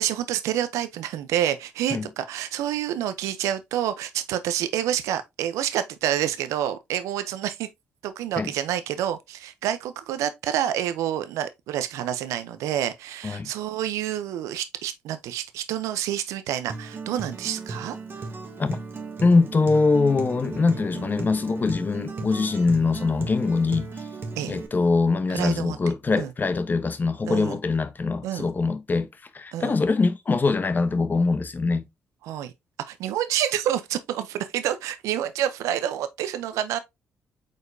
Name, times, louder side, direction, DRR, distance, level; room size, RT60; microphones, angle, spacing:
voice 1, 0.0-7.7 8.0-18.2 24.4-24.5 25.3-25.8 26.2-26.3 27.2-27.6 28.2-28.5 29.5-29.7 32.2-32.5 32.9-36.8, right 11 dB, 85° right, 0.5 m, -28 dB
Acoustic guitar, 16.7-24.7, right 4 dB, 45° right, 1.2 m, -36 dB
voice 2, 19.2-23.9 24.5-31.9, left 4 dB, 35° left, 0.8 m, -23 dB
4.9 x 4.2 x 2.6 m
supercardioid pair, 60°, 5 cm